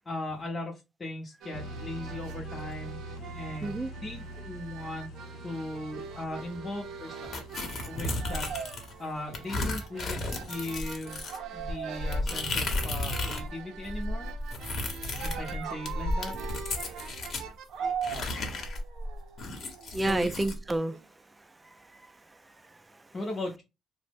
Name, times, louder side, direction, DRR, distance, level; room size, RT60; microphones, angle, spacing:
voice 1, 0.0-5.1 5.4-7.4 7.8-8.5 9.0-11.2 11.5-14.3 15.2-16.3 20.1-20.3 23.1-23.6, left 1 dB, 30° left, 0.6 m, -38 dB
sound 1, 1.4-21.0, right 7 dB, 80° right, 0.4 m, -42 dB
sound 2, 1.5-11.0, equal, 85° left, 0.5 m, -45 dB
sound 3, 7.3-8.9 9.3-13.5 13.8-17.5 18.0-20.6, left 2 dB, 60° left, 0.9 m, -33 dB
voice 2, 19.9-21.0 21.4-23.1, right 2 dB, 20° right, 0.3 m, -32 dB
2.8 x 2.0 x 3.4 m
cardioid pair, 90°, 0 cm